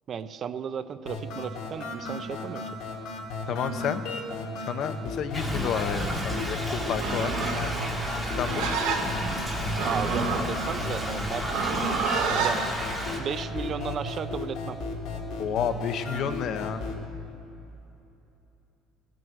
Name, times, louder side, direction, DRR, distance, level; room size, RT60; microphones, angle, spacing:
voice 1, 0.1-2.6 9.8-11.5 12.4-12.6 13.1-14.8, right 7 dB, 30° right, 12 dB, 0.4 m, -34 dB
sound 1, 1.1-17.1, left 2 dB, 60° left, 2.2 m, -35 dB
voice 2, 3.5-4.0 4.7-7.3 8.4-8.7 15.4-16.8, left 8 dB, 40° left, 9 dB, 0.7 m, -30 dB
Thunder / Rain, 5.3-13.2, equal, ahead, 1.6 m, -32 dB
Livestock farm animals working animals, 6.9-12.6, right 5 dB, 70° right, 2.5 m, -30 dB
17.5 x 7.7 x 9.1 m, 2.9 s
cardioid pair, 175°, 0 cm